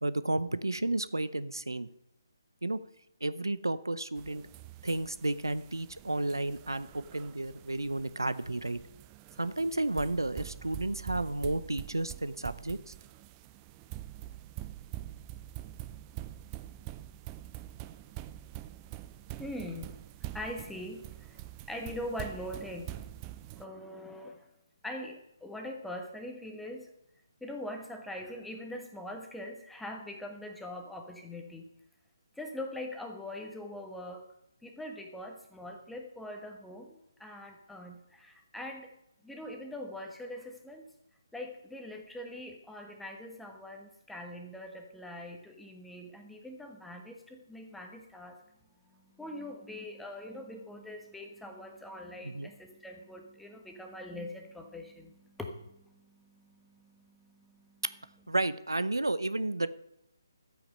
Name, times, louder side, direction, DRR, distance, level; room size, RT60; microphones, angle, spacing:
voice 1, 0.0-1.9 2.6-2.8 3.2-4.4 4.8-8.8 9.4-12.9 52.2-52.5 58.3-59.7, right 2 dB, 85° right, 15 dB, 0.7 m, -32 dB
sound 1, 4.2-23.7, right 14 dB, 20° right, 0.5 m, -45 dB
voice 2, 19.4-19.9 20.3-21.4 21.7-23.0 23.5-24.5 24.8-26.9 27.4-31.7 32.3-34.3 34.6-38.9 39.2-40.9 41.3-48.4 48.8-57.8, left 1 dB, 5° left, 3 dB, 1.3 m, -43 dB
12.5 x 8.8 x 5.4 m, 0.83 s
figure-of-eight pair, 145°, 2 cm